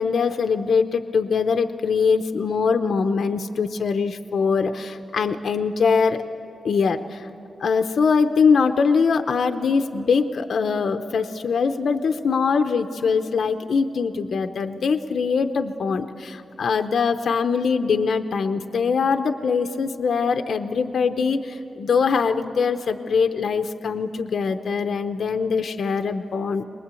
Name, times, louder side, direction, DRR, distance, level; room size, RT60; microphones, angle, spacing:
voice 1, 0.0-6.2 6.6-7.3 7.6-26.6, left 5 dB, 70° left, 8 dB, 0.7 m, -22 dB
23.0 x 21.0 x 8.3 m, 2.7 s
wide cardioid pair, 150°, 0 cm